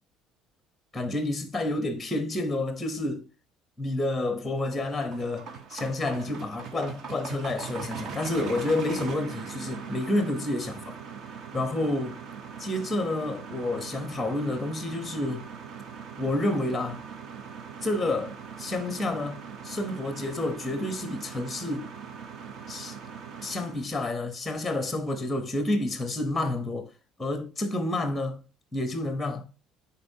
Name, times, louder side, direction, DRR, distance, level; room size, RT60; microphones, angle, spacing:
voice 1, 0.9-3.3 3.8-11.0 11.5-12.2 12.6-15.5 16.2-17.0 17.8-21.9 22.7-23.0 23.4-26.9 27.2-28.4 28.7-29.4, left 2 dB, 5° left, 0.8 m, -29 dB
sound 1, 4.5-23.9, right 6 dB, 40° right, 0.8 m, -41 dB
9.9 x 4.2 x 2.7 m
cardioid pair, 175°, 0 cm